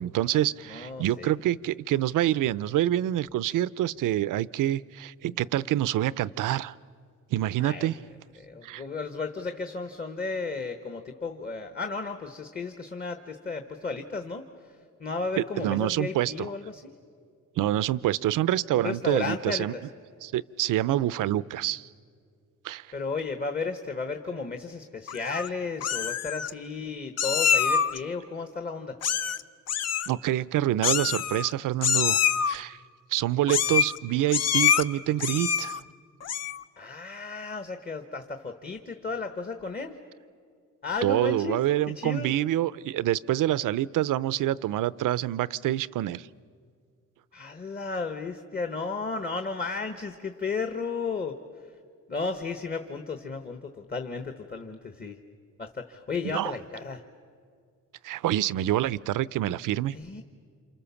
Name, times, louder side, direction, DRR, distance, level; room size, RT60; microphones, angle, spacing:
voice 1, 0.0-6.7 7.3-8.0 8.6-8.8 15.4-16.5 17.6-19.7 20.2-21.9 22.6-22.9 30.1-32.2 32.5-32.8 33.1-35.8 41.0-46.3 56.2-56.5 58.0-59.9, right 13 dB, 75° right, 19 dB, 0.6 m, -26 dB
voice 2, 0.7-1.3 7.6-7.9 8.4-14.4 14.7-16.9 18.8-19.8 22.9-29.0 36.8-40.0 40.8-41.6 41.9-42.3 47.3-51.4 52.1-55.2 55.6-57.0 59.9-60.2, left 4 dB, 30° left, 7 dB, 1.2 m, -34 dB
Meow, 25.1-25.5 25.8-26.5 27.2-28.0 29.0-29.4 29.7-30.1 30.8-31.5 31.8-32.6 33.5-34.0 34.3-34.8 35.2-35.8 36.2-36.6, left 8 dB, 50° left, 0.7 m, -25 dB
29.5 x 27.5 x 7.1 m, 2.1 s
cardioid pair, 135°, 32 cm